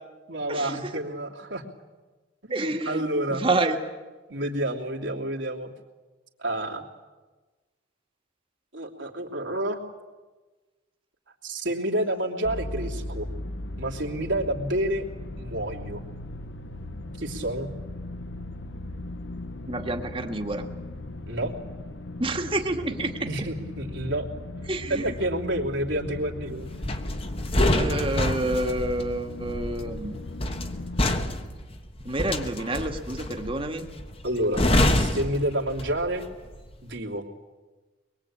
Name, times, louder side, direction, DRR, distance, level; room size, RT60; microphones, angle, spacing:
voice 1, 0.3-1.6 2.6-3.4 4.3-5.7 6.4-6.8 8.7-9.8 11.4-13.3 13.8-15.0 15.4-16.0 17.2-17.7 21.3-21.5 23.2-24.2 24.9-26.7 34.2-34.6 34.9-36.2 36.8-37.3, right 1 dB, 70° right, 0 dB, 3.0 m, -29 dB
voice 2, 2.5-3.0 3.3-3.8 19.7-20.7 22.2-23.5 24.7-25.1 27.7-30.4 32.0-33.9, right 2 dB, 30° right, 5 dB, 2.0 m, -28 dB
sound 1, 12.4-31.1, left 2 dB, 70° left, 1.1 m, -38 dB
sound 2, 26.8-36.2 36.5-36.7, left 1 dB, 30° left, 1.4 m, -27 dB
24.5 x 22.0 x 8.8 m, 1.3 s
head